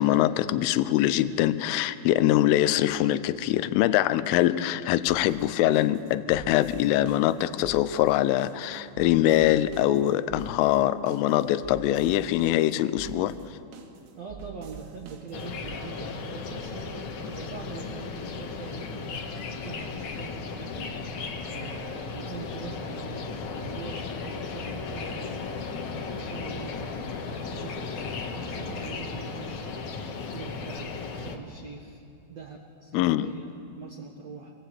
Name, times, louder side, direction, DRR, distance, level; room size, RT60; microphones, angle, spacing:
voice 1, 0.0-13.4 32.9-33.3, left 13 dB, 85° left, 14 dB, 3.3 m, -23 dB
sound 1, 5.1-15.8, right 9 dB, 90° right, 4.4 m, -46 dB
voice 2, 14.2-19.3 19.6-27.2 27.5-32.0 32.3-34.5, right 5 dB, 70° right, 1 dB, 1.5 m, -43 dB
sound 2, 15.3-31.4, left 4 dB, 65° left, 2.0 m, -35 dB
26.0 x 23.0 x 8.3 m, 2.6 s
omnidirectional pair, 5.8 m